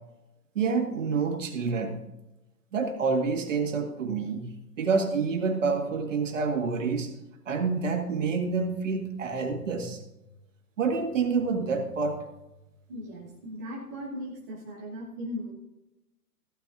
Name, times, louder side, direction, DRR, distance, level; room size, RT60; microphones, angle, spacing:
voice 1, 0.6-2.0 2.7-7.1 7.5-10.0 10.8-12.2, right 4 dB, 50° right, 5 dB, 1.9 m, -28 dB
voice 2, 12.9-15.5, equal, 10° right, -4 dB, 0.5 m, -38 dB
14.5 x 13.0 x 2.5 m, 0.97 s
figure-of-eight pair, 135°, 48 cm